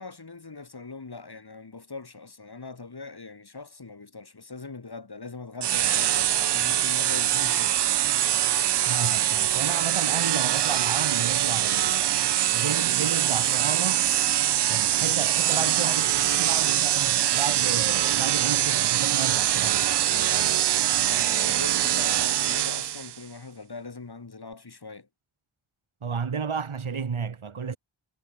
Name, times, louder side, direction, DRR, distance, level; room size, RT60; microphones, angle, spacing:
voice 1, 0.0-7.8 8.4-8.6 15.5-16.7 20.1-25.1, left 4 dB, 50° left, 6.5 m, -41 dB
sound 1, 5.6-23.2, right 11 dB, 60° right, 0.5 m, -23 dB
voice 2, 8.9-14.1 14.7-19.9 26.0-27.8, right 6 dB, 90° right, 8.0 m, -32 dB
cardioid pair, 50°, 48 cm